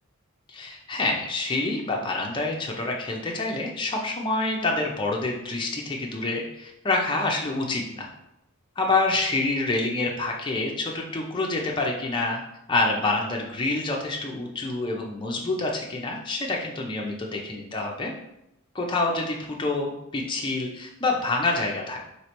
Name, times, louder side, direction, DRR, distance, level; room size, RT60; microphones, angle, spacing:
voice 1, 0.5-8.1 8.8-12.4 12.7-18.1 18.7-22.0, left 2 dB, 20° left, 0 dB, 0.4 m, -27 dB
3.2 x 2.8 x 2.9 m, 0.83 s
head